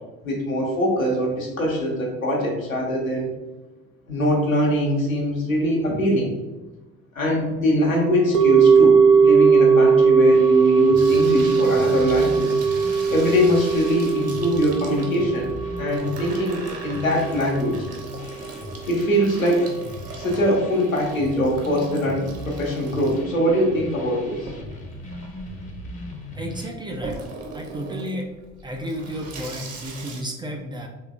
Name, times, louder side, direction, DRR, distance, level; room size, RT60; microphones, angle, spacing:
voice 1, 0.2-3.3 4.1-6.3 7.1-12.5 13.1-15.5 15.8-17.8 18.9-19.7 20.2-24.4, equal, 85° left, -2 dB, 0.9 m, -22 dB
sound 1, 8.3-18.6 18.9-19.0, right 5 dB, 65° right, 0.6 m, -19 dB
sound 2, 10.3-26.7, left 1 dB, 20° left, 0.7 m, -39 dB
Water tap faucet / Sink (filling or washing), 10.9-30.2, right 3 dB, 40° right, 1.0 m, -40 dB
voice 2, 26.3-27.2 27.5-28.3 28.6-30.9, equal, 10° right, 1 dB, 0.4 m, -32 dB
4.5 x 3.2 x 2.4 m, 1.1 s
figure-of-eight pair, 55°, 40 cm